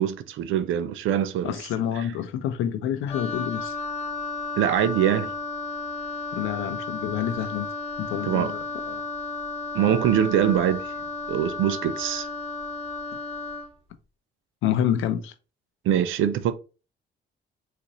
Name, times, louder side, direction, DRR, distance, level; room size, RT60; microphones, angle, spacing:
voice 1, 0.0-1.6 1.9-2.1 4.6-5.3 8.2-8.5 9.7-10.9 11.3-12.3 15.8-16.6, right 10 dB, 80° right, 0.5 m, -23 dB
voice 2, 1.4-3.8 6.3-7.7 8.0-9.0 9.8-9.9 14.6-15.3, left 10 dB, 90° left, 0.6 m, -28 dB
Wind instrument woodwind instrument, 3.1-13.7, left 3 dB, 30° left, 0.9 m, -33 dB
3.9 x 2.5 x 2.9 m
cardioid pair, 90°, 20 cm